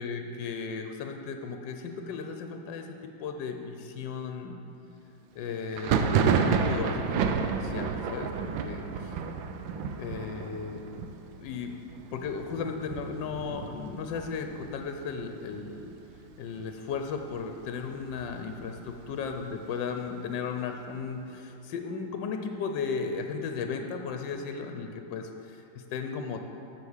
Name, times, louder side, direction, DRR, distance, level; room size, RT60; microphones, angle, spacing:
voice 1, 0.0-4.6 5.3-9.2 10.0-10.8 11.4-11.7 12.1-15.9 16.4-26.4, left 5 dB, 75° left, 5 dB, 1.3 m, -35 dB
Thunder, 5.7-15.2 15.5-16.2 16.4-17.4 17.8-19.5, right 6 dB, 85° right, 1.4 m, -31 dB
8.1 x 6.6 x 7.1 m, 2.9 s
omnidirectional pair, 2.0 m